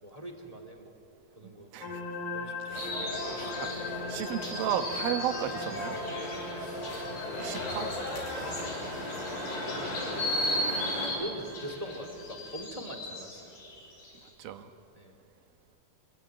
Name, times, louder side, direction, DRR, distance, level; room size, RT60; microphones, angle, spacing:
voice 1, 0.0-0.9 1.4-1.7 2.3-2.8 3.3-3.6 6.5-6.8 7.2-7.5 9.0-9.2 9.5-10.6 11.0-13.5 14.9-15.1, right 1 dB, 10° right, 4 dB, 2.0 m, -43 dB
sound 1, 1.8-12.6, left 3 dB, 90° left, 4.6 m, -41 dB
sound 2, 2.7-11.1, left 1 dB, 55° left, 8.0 m, -37 dB
sound 3, 2.8-14.3, left 1 dB, 70° left, 7.1 m, -37 dB
voice 2, 4.1-6.0 7.4-7.9 14.4-14.7, right 9 dB, 75° right, 7 dB, 3.0 m, -33 dB
26.0 x 23.5 x 9.2 m, 2.8 s
omnidirectional pair, 4.3 m